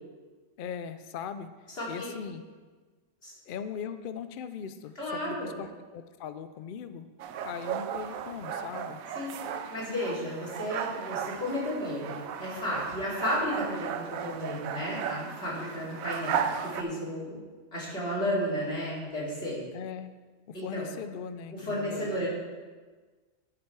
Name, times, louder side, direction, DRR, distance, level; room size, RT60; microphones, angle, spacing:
voice 1, 0.6-1.5 1.9-2.4 3.5-7.1 7.4-9.0 19.7-20.1 20.5-22.3, left 7 dB, 75° left, 11 dB, 0.4 m, -39 dB
voice 2, 1.8-2.1 3.2-3.3 5.0-5.5 9.1-9.4 9.7-17.4 17.7-19.6 20.5-20.9 21.5-22.3, equal, 45° left, -7 dB, 3.3 m, -33 dB
sound 1, 7.2-16.8, right 8 dB, 80° right, 1.0 m, -35 dB
12.5 x 6.1 x 4.6 m, 1.4 s
omnidirectional pair, 1.4 m